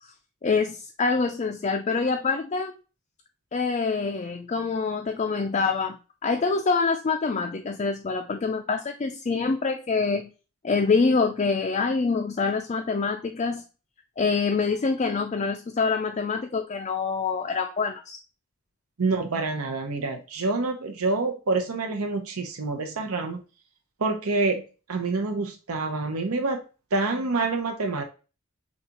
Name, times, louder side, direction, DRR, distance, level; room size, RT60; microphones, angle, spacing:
voice 1, 0.4-2.7 3.5-10.3 10.6-13.6 14.2-18.2, left 4 dB, 30° left, 3 dB, 0.3 m, -25 dB
voice 2, 19.0-23.4 24.0-24.6 24.9-26.6 26.9-28.0, right 3 dB, 90° right, 3 dB, 0.8 m, -27 dB
6.5 x 2.4 x 2.8 m, 0.33 s
head